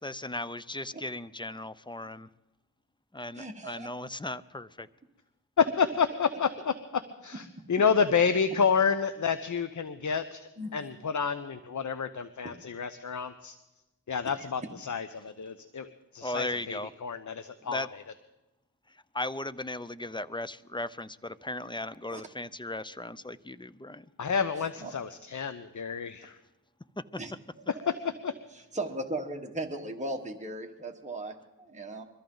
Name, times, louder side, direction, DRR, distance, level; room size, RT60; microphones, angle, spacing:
voice 1, 0.0-2.3 3.1-4.9 16.2-16.9 17.6-17.9 18.9-24.1 27.0-27.1, left 2 dB, 15° left, 14 dB, 0.5 m, -37 dB
voice 2, 3.4-3.9 10.6-10.8 14.4-14.5 22.1-22.2 24.8-24.9 27.2-27.3 27.8-28.1 28.7-32.0, right 1 dB, 20° right, 2 dB, 1.4 m, -37 dB
voice 3, 5.6-6.7 7.2-13.6 14.1-17.9 24.2-26.4 28.2-28.3, left 6 dB, 55° left, 11 dB, 0.7 m, -29 dB
22.5 x 14.0 x 3.9 m, 1.0 s
wide cardioid pair, 55°, 36 cm